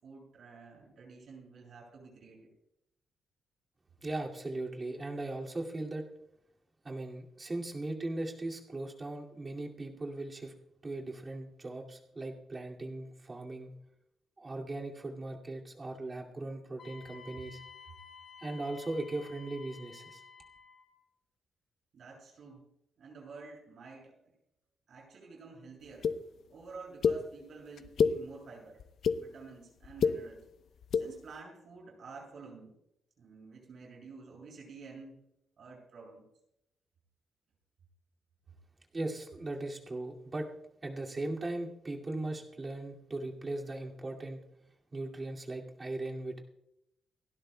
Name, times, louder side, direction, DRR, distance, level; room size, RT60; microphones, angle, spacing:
voice 1, 0.0-2.4 21.9-22.7 23.0-24.2 24.9-26.1 26.5-28.8 29.1-30.4 30.9-32.7 33.2-35.2 35.6-36.2, right 4 dB, 60° right, -1 dB, 7.0 m, -50 dB
voice 2, 4.0-6.0 6.8-10.5 10.8-13.7 14.4-17.6 18.4-20.2 38.9-40.5 40.8-44.4 44.9-46.4, right 2 dB, 25° right, -1 dB, 2.3 m, -38 dB
Wind instrument woodwind instrument, 16.8-20.9, left 5 dB, 50° left, 4.0 m, -52 dB
sound 1, 26.0-26.1 27.0-27.2 27.8-28.1 28.8-29.2 29.8-30.1 30.8-31.0, left 6 dB, 70° left, 0.8 m, -26 dB
29.5 x 12.0 x 2.2 m, 0.81 s
cardioid pair, 140°, 0 cm